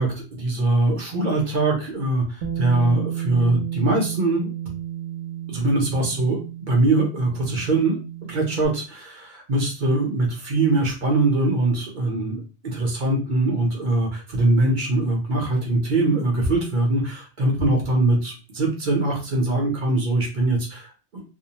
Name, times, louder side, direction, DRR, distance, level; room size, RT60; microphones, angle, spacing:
voice 1, 0.0-4.5 5.5-6.4 6.7-8.0 8.3-21.2, right 2 dB, 50° right, 0 dB, 0.7 m, -22 dB
Bass guitar, 2.4-8.7, right 10 dB, 85° right, 1.0 m, -32 dB
2.6 x 2.0 x 2.8 m, 0.33 s
omnidirectional pair, 1.3 m